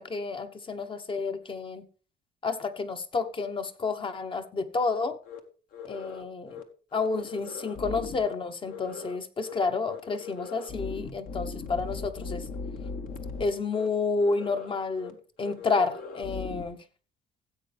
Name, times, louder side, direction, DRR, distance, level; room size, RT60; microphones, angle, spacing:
voice 1, 0.0-1.8 2.4-5.2 5.8-6.6 6.9-12.5 13.4-16.8, left 4 dB, 30° left, 1.1 m, -30 dB
sound 1, 5.3-5.4 5.7-6.2 6.5-6.6 6.9-8.3 8.7-9.2 9.4-9.6 9.9-13.4 13.7-13.9 14.2-14.7 15.0-15.1 15.4-16.6, left 4 dB, 55° left, 1.6 m, -39 dB
15.5 x 7.9 x 3.4 m
cardioid pair, 110°, 17 cm